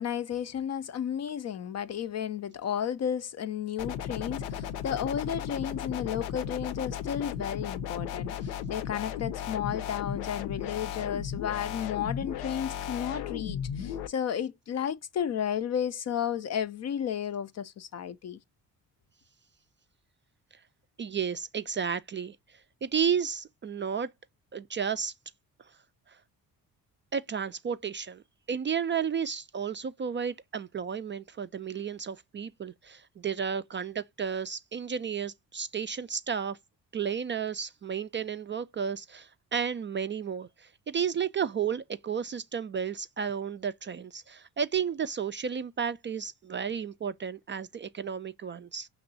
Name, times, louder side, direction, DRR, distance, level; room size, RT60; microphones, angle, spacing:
voice 1, 0.0-18.4, left 9 dB, 40° left, 0.4 m, -33 dB
sound 1, 3.8-14.1, left 8 dB, 75° left, 0.6 m, -35 dB
voice 2, 21.0-22.4 22.8-24.1 24.5-25.1 27.1-28.2 28.5-36.6 36.9-48.9, right 7 dB, 30° right, 0.3 m, -32 dB
5.9 x 2.9 x 2.6 m
hypercardioid pair, 45°, 46 cm